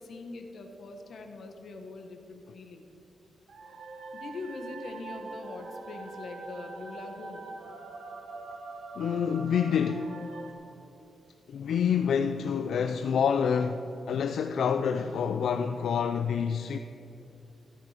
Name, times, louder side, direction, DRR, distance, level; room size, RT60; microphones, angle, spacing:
voice 1, 0.0-2.9 4.1-7.5, left 3 dB, 60° left, 1.4 m, -42 dB
sound 1, 3.5-10.5, right 3 dB, 85° right, 1.3 m, -43 dB
voice 2, 9.0-10.2 11.5-16.8, left 7 dB, 85° left, 0.4 m, -27 dB
14.0 x 11.0 x 5.1 m
wide cardioid pair, 175°, 0 cm